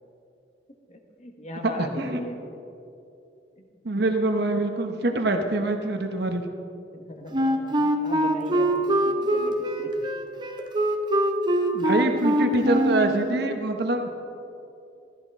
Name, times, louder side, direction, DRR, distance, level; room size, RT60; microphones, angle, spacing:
voice 1, 0.9-2.4 3.6-3.7 6.9-9.9, equal, 35° left, 3 dB, 1.3 m, -38 dB
voice 2, 1.6-2.2 3.8-6.4 11.7-14.1, right 2 dB, 55° right, 5 dB, 0.9 m, -25 dB
Wind instrument woodwind instrument, 7.3-13.2, right 1 dB, 25° right, 0.7 m, -23 dB
14.5 x 13.5 x 3.6 m, 2.7 s
head